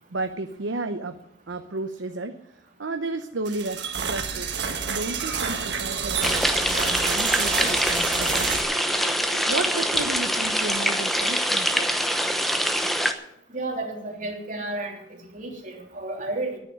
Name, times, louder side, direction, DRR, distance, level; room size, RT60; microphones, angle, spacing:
voice 1, 0.1-1.2 1.5-2.3 2.8-4.5 4.8-12.0, right 2 dB, 80° right, 7 dB, 0.8 m, -33 dB
sound 1, 3.5-8.6, right 6 dB, 65° right, 1.7 m, -28 dB
sound 2, 6.2-13.1, equal, ahead, 0.9 m, -24 dB
voice 2, 13.5-16.6, right 2 dB, 45° right, 0 dB, 3.3 m, -32 dB
10.0 x 9.5 x 9.7 m, 0.79 s
head